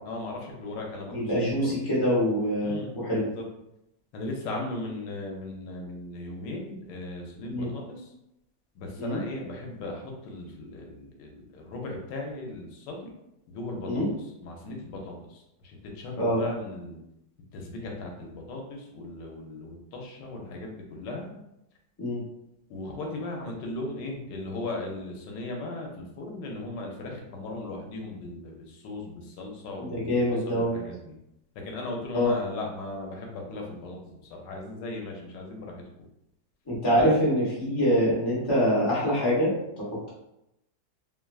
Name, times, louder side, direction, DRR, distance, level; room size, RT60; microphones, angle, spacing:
voice 1, 0.0-1.7 2.6-3.4 4.1-8.1 8.7-13.1 13.5-14.0 14.4-17.0 17.5-21.3 22.7-31.1 31.5-35.8 36.9-37.1, left 2 dB, 85° left, 0 dB, 1.3 m, -37 dB
voice 2, 1.1-3.3 7.5-7.7 9.0-9.2 13.9-14.1 16.2-16.4 22.0-22.2 29.8-30.7 32.1-32.3 36.7-40.1, equal, 25° left, -7 dB, 0.6 m, -25 dB
3.0 x 2.2 x 2.3 m, 0.86 s
omnidirectional pair, 1.9 m